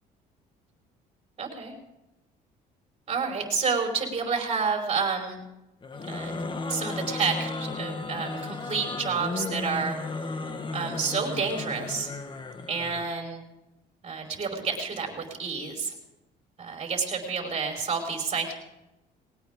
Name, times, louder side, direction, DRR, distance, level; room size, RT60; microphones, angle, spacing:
voice 1, 1.4-1.7 3.1-5.4 6.1-6.4 6.7-10.0 10.7-12.1 12.7-13.4 14.0-15.9 16.6-18.5, right 5 dB, 35° right, 2 dB, 5.2 m, -29 dB
sound 1, 5.8-13.1, left 3 dB, 30° left, 1.7 m, -34 dB
20.0 x 19.0 x 3.8 m, 0.95 s
cardioid pair, 110°, 17 cm